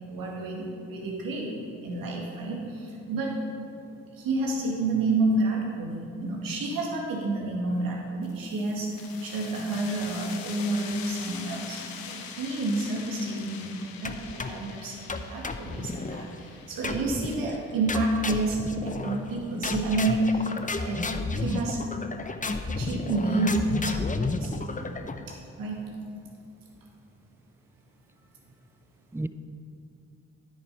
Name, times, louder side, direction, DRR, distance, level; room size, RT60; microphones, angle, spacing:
voice 1, 0.1-1.5 1.8-3.4 4.1-21.1 21.3-21.8 22.6-24.8 25.3-25.9, right 2 dB, 75° right, 2.1 m, -29 dB
sound 1, 8.2-19.6, left 7 dB, 75° left, 1.0 m, -44 dB
sound 2, 14.0-14.7 15.1-16.3 16.8-17.4 17.9-19.3 19.6-25.3, left 3 dB, 20° left, 0.8 m, -32 dB
voice 2, 24.8-25.3 29.1-29.3, right 2 dB, 5° right, 0.5 m, -36 dB
10.5 x 7.9 x 5.4 m
hypercardioid pair, 45°, 35 cm